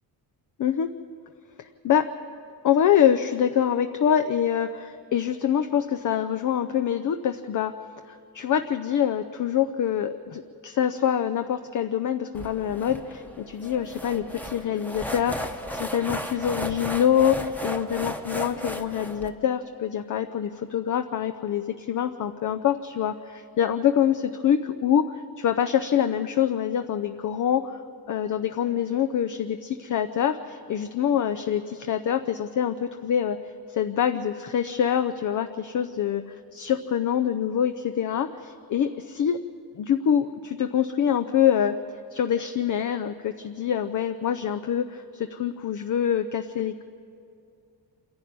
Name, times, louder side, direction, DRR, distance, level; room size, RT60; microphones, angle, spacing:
voice 1, 0.6-0.9 1.6-2.1 2.6-7.7 8.1-27.8 28.1-33.4 33.7-36.2 36.5-39.4 39.8-41.7 42.1-46.8, left 9 dB, 50° left, 8 dB, 0.7 m, -25 dB
sound 1, 12.3-19.3, equal, 5° left, 1.0 m, -35 dB
26.5 x 11.5 x 9.4 m, 2.5 s
cardioid pair, 130°, 39 cm